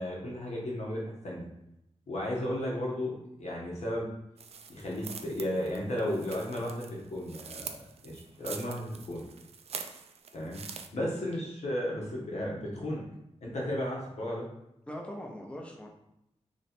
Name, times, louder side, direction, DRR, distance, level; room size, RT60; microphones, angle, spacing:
voice 1, 0.0-1.5 2.1-4.1 4.7-7.6 8.0-9.2 10.3-10.6 10.9-13.0 13.4-14.5, left 1 dB, 85° left, -3 dB, 1.2 m, -34 dB
sound 1, 4.4-10.9, right 6 dB, 65° right, 0.4 m, -45 dB
voice 2, 14.9-15.9, equal, 10° left, 0 dB, 0.6 m, -42 dB
3.1 x 3.0 x 4.2 m, 0.83 s
wide cardioid pair, 160°, 11 cm